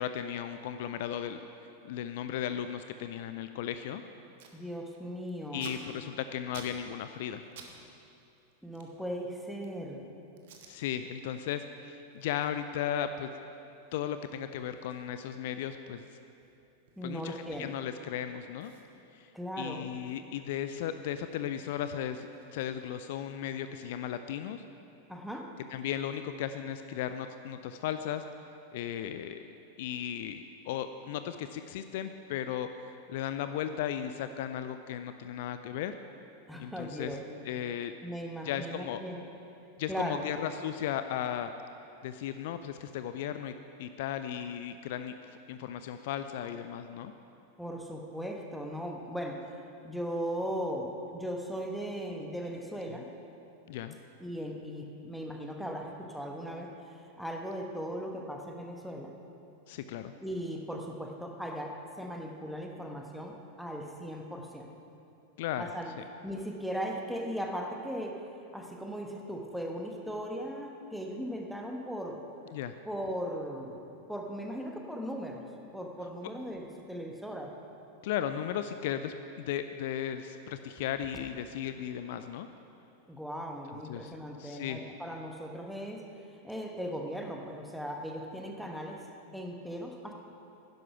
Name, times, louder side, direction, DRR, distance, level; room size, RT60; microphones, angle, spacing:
voice 1, 0.0-1.4 1.8-4.0 5.5-7.4 10.7-13.3 13.9-16.1 17.0-18.7 19.1-19.3 19.6-24.6 25.7-28.2 28.7-29.5 29.8-32.7 33.1-36.0 36.6-37.1 37.5-37.9 38.4-39.0 39.8-41.5 42.0-45.1 45.5-47.1 52.9-53.0 53.7-54.0 59.7-60.1 65.4-65.6 72.5-72.7 78.0-82.5 83.9-84.1 84.4-84.8, left 10 dB, 50° left, 10 dB, 0.4 m, -36 dB
Packing tape duct tape, 4.4-4.6 4.9-7.7 8.0-9.8 10.4-10.7 11.2-11.4 11.8-18.0 18.2-18.3 18.6-21.0 21.2-23.2, right 6 dB, 55° right, 1.3 m, -55 dB
voice 2, 4.5-5.7 8.6-10.1 17.0-17.7 19.3-19.8 25.1-25.5 36.5-37.2 38.0-39.2 39.9-40.2 47.6-49.5 49.8-53.1 54.2-59.1 60.2-64.7 65.6-65.9 66.2-68.2 68.5-72.2 72.8-73.8 74.1-75.4 75.7-77.5 83.1-86.0 86.4-89.0 89.3-90.1, equal, ahead, 1 dB, 1.3 m, -38 dB
11.0 x 10.5 x 5.9 m, 2.7 s
figure-of-eight pair, 90°, 0 cm